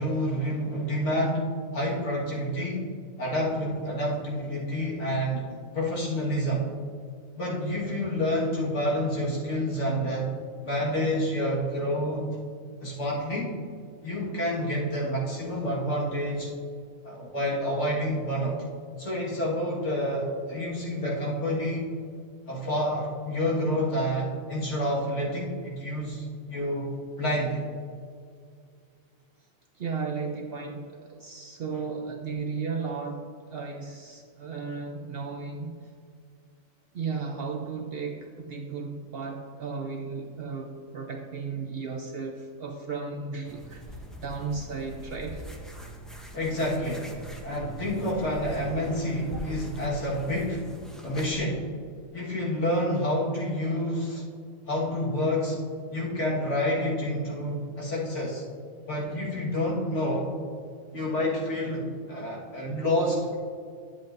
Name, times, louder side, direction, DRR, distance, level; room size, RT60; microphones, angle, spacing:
voice 1, 0.0-2.8 3.2-5.5 5.7-6.7 7.3-10.3 10.6-12.3 12.8-13.6 14.0-16.5 17.0-18.6 19.0-21.9 22.5-26.9 27.2-27.6 46.3-47.2 47.4-50.7 51.0-51.7 52.1-54.2 54.7-55.6 55.9-58.4 58.9-60.3 60.9-63.4, equal, 60° left, -4 dB, 2.0 m, -28 dB
voice 2, 29.8-35.8 36.9-45.5 49.3-49.5, right 5 dB, 60° right, 3 dB, 0.7 m, -35 dB
sound 1, 43.4-51.4, right 1 dB, ahead, 0.6 m, -42 dB
10.0 x 7.7 x 2.6 m, 2.2 s
omnidirectional pair, 1.4 m